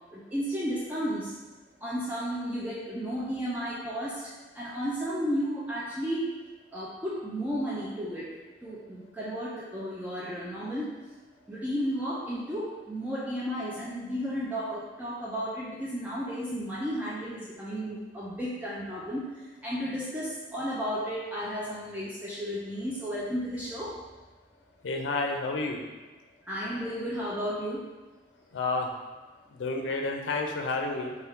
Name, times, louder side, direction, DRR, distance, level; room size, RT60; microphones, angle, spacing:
voice 1, 0.0-1.4 1.8-6.4 6.7-11.1 11.5-24.1 26.4-28.0, equal, 10° right, -7 dB, 0.4 m, -33 dB
voice 2, 24.8-25.8 28.5-28.9 29.5-31.1, left 3 dB, 80° left, 2 dB, 0.5 m, -30 dB
3.5 x 2.3 x 4.3 m, 1.2 s
head